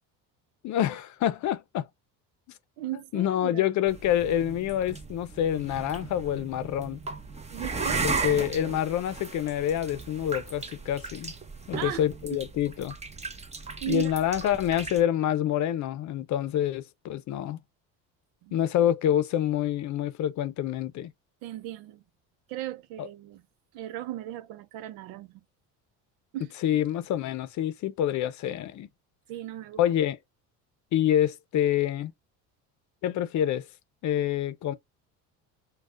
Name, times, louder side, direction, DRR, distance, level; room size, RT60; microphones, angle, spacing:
voice 1, 0.6-1.9 3.1-7.0 8.0-11.3 11.7-12.9 13.9-17.6 18.5-21.1 23.0-23.1 26.6-28.9 29.8-30.2 30.9-32.1 33.0-33.7 34.0-34.7, left 11 dB, 55° left, 0.7 m, -27 dB
voice 2, 2.8-3.7 7.5-8.0 11.7-12.0 13.8-14.1 18.4-18.7 21.4-22.0 22.5-23.4 23.7-25.3 26.3-26.5 29.3-29.8, right 13 dB, 85° right, 0.7 m, -36 dB
sound 1, 3.9-15.0, right 4 dB, 20° right, 0.9 m, -36 dB
6.3 x 2.3 x 2.4 m
cardioid pair, 100°, 34 cm